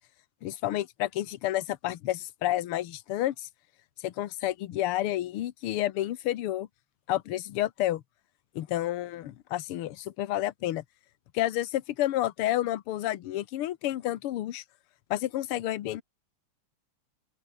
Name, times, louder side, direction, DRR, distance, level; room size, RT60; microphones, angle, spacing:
voice 1, 0.4-3.5 4.0-6.7 7.1-8.0 8.5-10.8 11.3-14.6 15.1-16.0, left 14 dB, 65° left, 1.6 m, -30 dB
open air
omnidirectional pair, 3.4 m